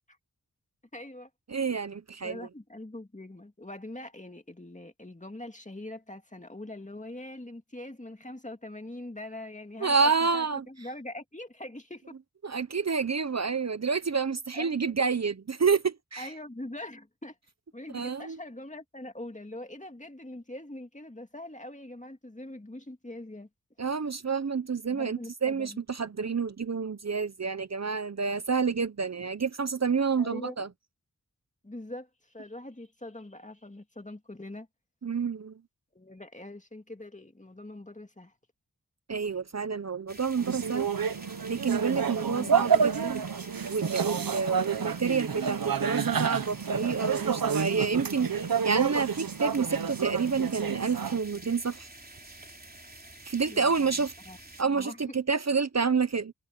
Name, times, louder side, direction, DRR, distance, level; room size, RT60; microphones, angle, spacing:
voice 1, 0.9-1.3 2.2-10.0 10.3-12.1 13.4-13.5 14.5-14.9 16.2-17.3 17.7-23.5 24.9-25.8 30.2-30.6 31.6-34.7 35.9-38.3 42.3-42.6 53.4-54.4 54.7-55.0, left 1 dB, 20° left, 2.3 m, -43 dB
voice 2, 1.5-2.5 9.8-10.6 12.4-16.3 17.9-18.4 23.8-30.7 35.0-35.6 39.1-40.9 41.5-43.2 43.7-51.9 53.2-54.1 54.6-56.3, right 5 dB, 50° right, 0.9 m, -29 dB
sound 1, 40.1-54.6, right 2 dB, 25° right, 3.4 m, -48 dB
sound 2, 40.4-51.2, right 6 dB, 80° right, 1.0 m, -29 dB
wide cardioid pair, 50°, 35 cm